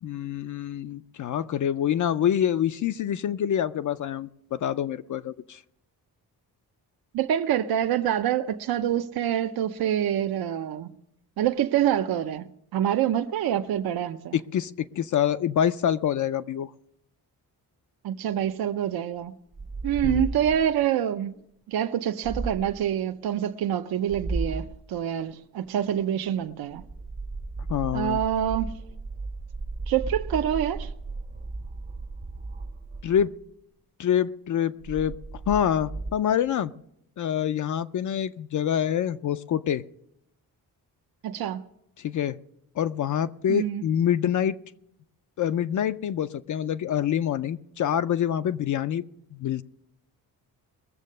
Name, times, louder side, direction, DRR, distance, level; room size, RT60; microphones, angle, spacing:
voice 1, 0.0-5.6 14.3-16.7 20.0-20.4 27.7-28.2 33.0-33.3 34.0-35.2 35.5-36.7 37.2-39.8 42.0-42.4 42.8-44.6 45.4-49.0 49.4-49.6, left 9 dB, 55° left, 0.4 m, -26 dB
voice 2, 7.1-10.9 11.4-12.4 12.7-14.4 18.0-19.3 19.8-21.4 21.7-26.8 27.9-28.8 29.9-30.9 41.2-41.6 43.5-43.8, right 10 dB, 75° right, 0.6 m, -26 dB
sound 1, 19.5-20.8 22.2-22.8 24.1-24.8 26.7-33.4 34.8-36.1, right 3 dB, 30° right, 0.6 m, -35 dB
21.0 x 7.4 x 6.5 m
wide cardioid pair, 175°, 37 cm